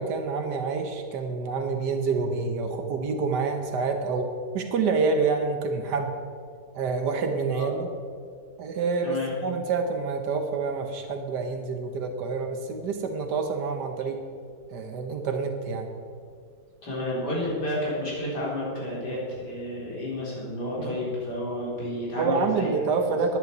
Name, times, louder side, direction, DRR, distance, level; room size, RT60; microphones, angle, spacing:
voice 1, 0.0-4.3 4.5-6.1 6.7-7.9 8.6-14.2 14.7-15.9 20.8-21.0 22.1-23.4, right 4 dB, 80° right, 5 dB, 1.5 m, -27 dB
voice 2, 16.8-22.7, left 1 dB, 75° left, -6 dB, 4.5 m, -31 dB
11.0 x 8.9 x 7.9 m, 2.2 s
omnidirectional pair, 1.8 m